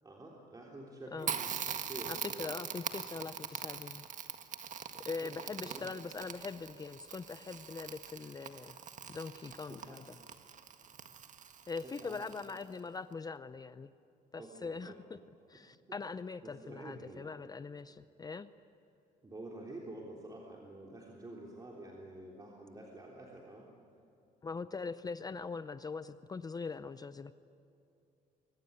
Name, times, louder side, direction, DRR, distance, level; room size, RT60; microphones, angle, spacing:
voice 1, 0.0-2.6 3.1-3.2 5.1-5.3 5.6-5.9 9.7-10.0 11.8-12.3 14.4-15.2 16.4-17.3 19.2-23.7, right 2 dB, 20° right, -2 dB, 3.5 m, -49 dB
Crackle, 1.2-12.8, right 7 dB, 45° right, 1.7 m, -43 dB
voice 2, 2.1-4.0 5.0-8.8 9.1-10.0 11.7-13.9 14.3-14.9 15.5-18.5 24.4-27.3, left 4 dB, 20° left, 13 dB, 0.6 m, -42 dB
24.5 x 24.5 x 9.7 m, 2.6 s
cardioid pair, 110°, 17 cm